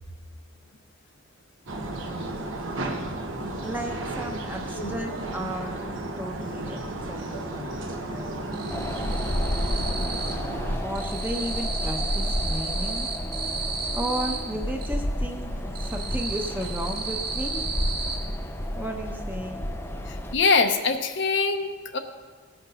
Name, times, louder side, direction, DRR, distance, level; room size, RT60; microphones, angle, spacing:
sound 1, 1.7-10.8, right 2 dB, 65° right, 1.1 m, -33 dB
voice 1, 3.6-8.7 10.8-13.1 13.9-17.6 18.7-19.6, right 1 dB, 10° right, 2 dB, 0.9 m, -34 dB
sound 2, 5.6-6.6 6.9-7.6 7.8-10.5 10.7-14.9 15.3-18.2, right 4 dB, 45° right, 1.8 m, -33 dB
Wind, 8.7-20.3, equal, 10° left, 0.5 m, -31 dB
voice 2, 20.1-22.0, left 4 dB, 55° left, 7 dB, 0.7 m, -23 dB
17.5 x 6.0 x 5.6 m, 1.5 s
head